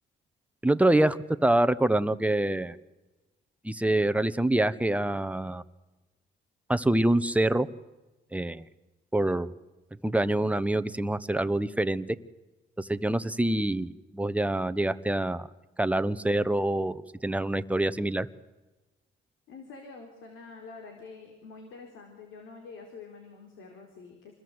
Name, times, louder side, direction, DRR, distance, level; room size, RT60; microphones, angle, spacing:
voice 1, 0.6-2.8 3.6-5.6 6.7-7.7 8.3-8.6 9.1-9.5 10.0-12.0 12.8-15.5 15.8-18.3, right 1 dB, 5° right, 12 dB, 1.2 m, -26 dB
voice 2, 19.5-24.3, left 4 dB, 85° left, 3 dB, 4.0 m, -47 dB
28.0 x 21.0 x 8.1 m, 1.1 s
cardioid pair, 90°, 20 cm